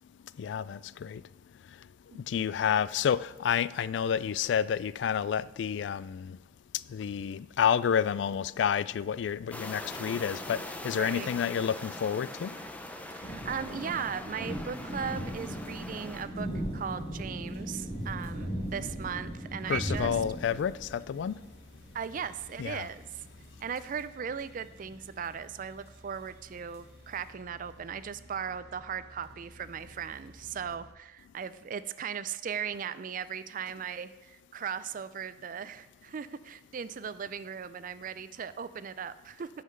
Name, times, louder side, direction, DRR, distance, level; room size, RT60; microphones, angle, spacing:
voice 1, 0.4-1.2 2.1-6.4 6.9-12.5 19.7-21.4 22.6-22.9, left 8 dB, 75° left, 0.3 m, -29 dB
sound 1, 9.5-16.2, left 1 dB, 10° left, 0.7 m, -42 dB
voice 2, 11.0-11.3 13.2-20.2 21.9-23.2 23.6-39.5, right 7 dB, 45° right, 0.4 m, -38 dB
sound 2, 13.2-23.8 24.2-25.3 26.7-26.8, equal, 35° left, 2.3 m, -38 dB
sound 3, 16.3-30.9, equal, 60° right, 1.1 m, -55 dB
9.4 x 5.8 x 6.7 m
head